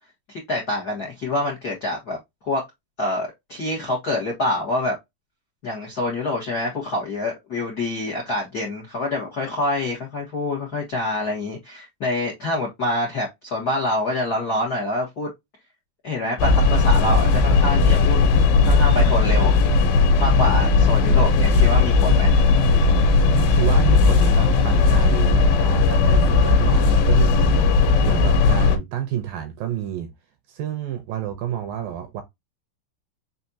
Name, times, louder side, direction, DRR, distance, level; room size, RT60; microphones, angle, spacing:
voice 1, 0.3-2.2 2.4-2.6 3.0-5.0 5.6-15.3 16.0-18.2 18.6-19.6 20.2-22.4, left 2 dB, 90° left, 0.8 m, -26 dB
sound 1, 16.4-28.8, left 4 dB, 70° left, 2.6 m, -17 dB
voice 2, 23.3-30.1 30.5-32.2, right 10 dB, 80° right, 2.1 m, -29 dB
6.5 x 2.6 x 2.7 m
omnidirectional pair, 4.7 m